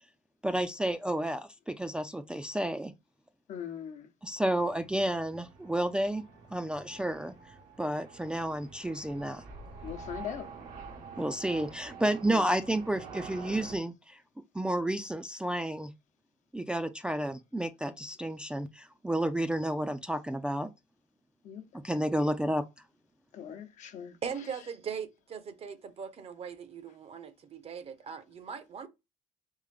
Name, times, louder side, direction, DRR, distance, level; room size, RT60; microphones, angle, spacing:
voice 1, 0.4-2.9 4.2-6.2 6.5-7.3 7.8-9.4 11.2-14.2 14.5-15.9 16.5-20.7 21.8-22.6, right 1 dB, 5° right, 0.4 m, -31 dB
voice 2, 3.5-4.1 9.8-10.5 12.3-12.5 21.4-21.7 23.3-24.2, left 8 dB, 65° left, 0.8 m, -40 dB
sound 1, 4.6-13.8, right 4 dB, 75° right, 1.0 m, -47 dB
voice 3, 24.2-28.9, right 7 dB, 45° right, 0.7 m, -40 dB
3.7 x 3.3 x 3.2 m
cardioid pair, 85°, 14 cm